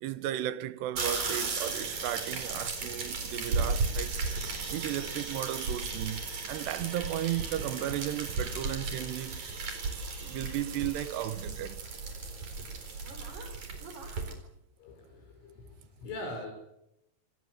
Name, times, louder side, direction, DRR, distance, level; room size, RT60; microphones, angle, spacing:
voice 1, 0.0-4.1 4.7-9.4 10.2-11.8, right 13 dB, 75° right, 2.8 m, -35 dB
sound 1, 1.0-14.3, right 4 dB, 40° right, 5.4 m, -35 dB
voice 2, 14.8-15.7 16.0-16.5, left 2 dB, 80° left, 8.1 m, -41 dB
28.0 x 19.5 x 8.0 m
omnidirectional pair, 5.6 m